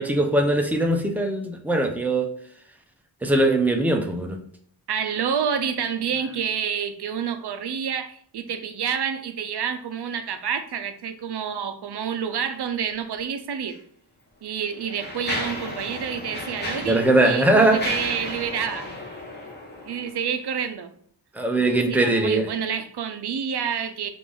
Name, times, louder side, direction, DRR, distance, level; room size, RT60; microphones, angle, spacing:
voice 1, 0.0-2.3 3.2-4.4 16.9-17.8 21.4-22.4, right 2 dB, 5° right, 0.4 m, -20 dB
voice 2, 4.9-13.8 14.4-18.9 19.9-20.9 21.6-24.1, right 7 dB, 60° right, 0.5 m, -28 dB
Mechanisms, 13.6-13.8 14.5-20.2, left 1 dB, 20° left, 1.1 m, -34 dB
5.1 x 2.6 x 3.5 m
wide cardioid pair, 165°, 45 cm